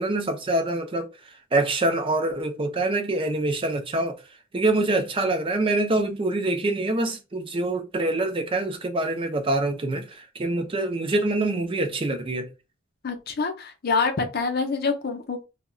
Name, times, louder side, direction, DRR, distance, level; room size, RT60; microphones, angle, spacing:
voice 1, 0.0-4.2 4.5-12.5, right 2 dB, 25° right, 0.4 m, -25 dB
voice 2, 13.0-15.4, left 4 dB, 50° left, 0.5 m, -26 dB
2.3 x 2.1 x 3.6 m
head